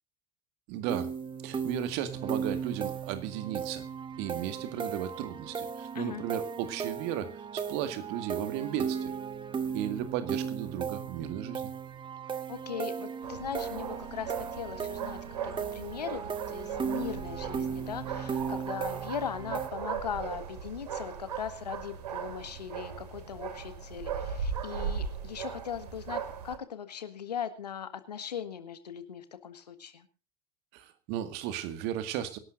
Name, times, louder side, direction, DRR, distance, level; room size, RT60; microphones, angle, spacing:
voice 1, 0.7-1.1 1.4-3.9 4.2-9.1 9.7-11.7 30.7-32.4, right 11 dB, 55° right, 10 dB, 2.0 m, -35 dB
sound 1, 0.9-19.7, right 6 dB, 25° right, 1.5 m, -36 dB
voice 2, 12.5-30.1, left 8 dB, 80° left, 10 dB, 1.8 m, -39 dB
sound 2, 13.2-26.6, right 7 dB, 75° right, 2.4 m, -38 dB
25.5 x 12.0 x 2.6 m, 0.31 s
figure-of-eight pair, 75°, 21 cm